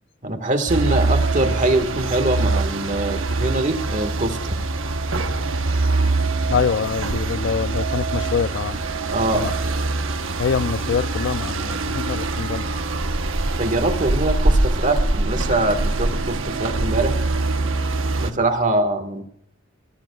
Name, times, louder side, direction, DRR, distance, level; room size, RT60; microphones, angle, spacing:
voice 1, 0.2-4.5 9.1-9.5 13.6-17.2 18.2-19.2, right 2 dB, 40° right, 1.7 m, -23 dB
sound 1, 0.7-18.3, right 2 dB, 80° right, 1.1 m, -23 dB
voice 2, 6.5-8.8 9.3-9.6 10.4-13.0, left 6 dB, 65° left, 0.4 m, -25 dB
20.0 x 18.5 x 2.4 m
head